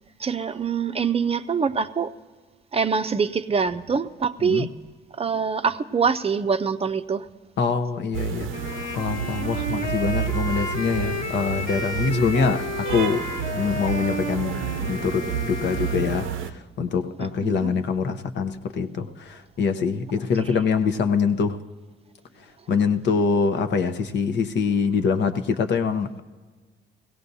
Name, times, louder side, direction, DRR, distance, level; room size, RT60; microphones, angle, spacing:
voice 1, 0.2-2.1 2.7-4.7 5.2-7.3 12.1-12.5 17.2-17.7 20.5-20.6, right 6 dB, 30° right, 0.5 m, -25 dB
voice 2, 7.6-8.5 9.0-13.3 13.5-14.6 14.8-15.2 15.5-16.3 16.8-21.6 22.7-26.2, left 5 dB, 65° left, 0.8 m, -24 dB
sound 1, 8.1-16.5, right 9 dB, 85° right, 0.6 m, -30 dB
Wind instrument woodwind instrument, 8.5-16.4, left 2 dB, 40° left, 1.3 m, -32 dB
22.0 x 17.0 x 2.7 m
cardioid pair, 90°, 20 cm